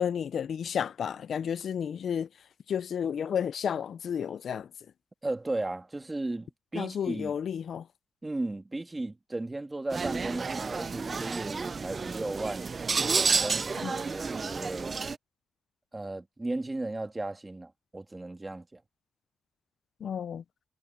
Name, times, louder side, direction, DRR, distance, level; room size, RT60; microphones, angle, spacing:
voice 1, 0.0-2.3 2.7-4.7 6.7-7.9 13.8-14.0 20.0-20.4, left 8 dB, 50° left, 0.4 m, -31 dB
voice 2, 5.2-7.4 8.2-15.0 15.9-18.8, right 2 dB, 15° right, 1.8 m, -35 dB
sound 1, 9.9-15.2, right 4 dB, 30° right, 0.4 m, -30 dB
cardioid pair, 135°, 0 cm